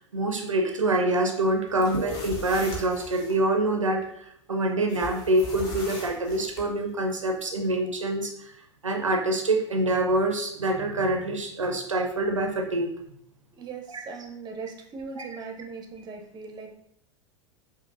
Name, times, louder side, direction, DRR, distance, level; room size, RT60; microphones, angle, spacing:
voice 1, 0.1-8.5 8.8-12.9 15.2-15.3, right 1 dB, 90° right, 3 dB, 0.4 m, -26 dB
sound 1, 1.7-3.4 4.9-6.6, left 2 dB, 55° left, 1.0 m, -39 dB
voice 2, 13.6-16.7, right 5 dB, 25° right, 3 dB, 0.6 m, -39 dB
5.1 x 2.0 x 2.5 m, 0.73 s
figure-of-eight pair, 85°, 16 cm